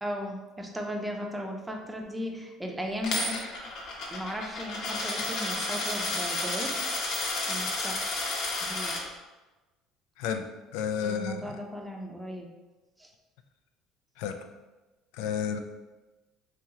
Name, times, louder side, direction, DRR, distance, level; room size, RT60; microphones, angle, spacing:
voice 1, 0.0-3.4 4.1-6.7 7.5-8.0 8.6-9.0 11.0-12.5 13.0-13.1, equal, 10° right, 1 dB, 0.5 m, -36 dB
Coin (dropping), 3.0-9.0, left 2 dB, 60° left, 0.8 m, -31 dB
voice 2, 10.7-11.4 14.2-14.3 15.2-15.6, left 7 dB, 85° left, 7 dB, 0.3 m, -30 dB
3.0 x 2.9 x 3.7 m, 1.1 s
cardioid pair, 115°, 0 cm